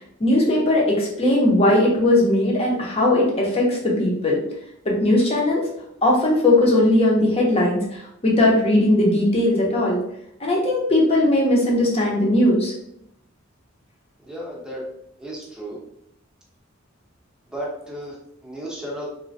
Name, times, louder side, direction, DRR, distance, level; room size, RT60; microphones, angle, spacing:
voice 1, 0.2-4.4 4.8-5.6 6.0-10.0 10.4-12.7, left 1 dB, 30° left, -2 dB, 0.7 m, -19 dB
voice 2, 14.2-14.8 15.2-15.8 17.5-18.2 18.4-19.1, equal, 5° right, -4 dB, 0.7 m, -33 dB
3.1 x 2.1 x 2.6 m, 0.75 s
head